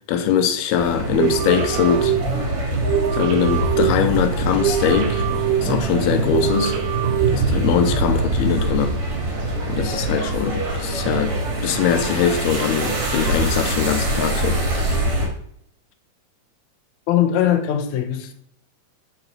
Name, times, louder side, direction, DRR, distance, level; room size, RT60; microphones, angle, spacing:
voice 1, 0.1-2.1 3.1-5.3 5.6-6.8 7.3-9.0 9.7-11.4 11.6-14.6, left 8 dB, 85° left, 2.8 m, -22 dB
sound 1, 0.8-15.3, right 2 dB, 40° right, 3.3 m, -24 dB
sound 2, 1.1-8.0, right 9 dB, 80° right, 1.5 m, -25 dB
sound 3, 2.0-14.6, right 2 dB, 65° right, 2.4 m, -33 dB
voice 2, 17.1-18.3, left 10 dB, 65° left, 1.9 m, -20 dB
13.0 x 5.7 x 4.1 m
omnidirectional pair, 4.4 m